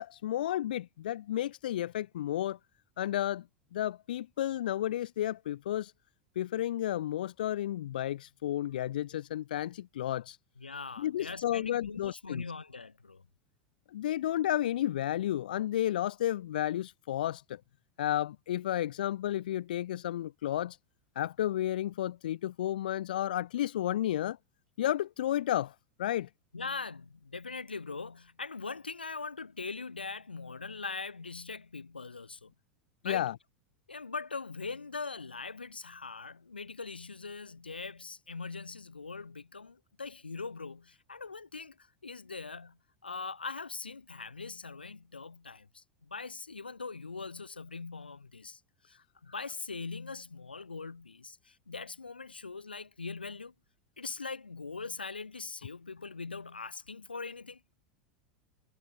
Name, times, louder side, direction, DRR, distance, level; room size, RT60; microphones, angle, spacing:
voice 1, 0.0-2.6 3.0-3.4 3.7-5.9 6.4-10.4 11.0-12.4 13.9-17.6 18.0-20.8 21.2-24.4 24.8-25.7 26.0-26.3 33.0-33.3, left 12 dB, 65° left, 0.4 m, -32 dB
voice 2, 10.6-13.3 26.5-32.5 33.0-33.3 33.9-53.5 54.0-57.7, left 4 dB, 85° left, 1.0 m, -41 dB
figure-of-eight pair, 85°, 5 cm